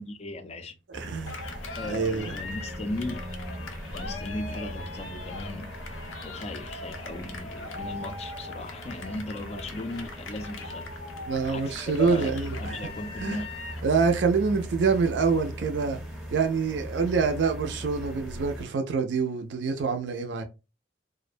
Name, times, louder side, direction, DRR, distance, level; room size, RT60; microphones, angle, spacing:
voice 1, 0.0-1.0 1.8-3.2 3.9-5.7 6.2-11.0 11.5-13.5, left 2 dB, 35° left, 0.4 m, -37 dB
sound 1, 0.9-18.7, equal, 5° right, 0.7 m, -39 dB
voice 2, 0.9-1.6 1.9-2.4 11.3-12.8 13.2-13.5 13.8-16.0 16.3-20.4, right 5 dB, 65° right, 0.4 m, -26 dB
Cheering, 1.3-13.9, left 3 dB, 90° left, 0.5 m, -41 dB
2.4 x 2.1 x 2.5 m
head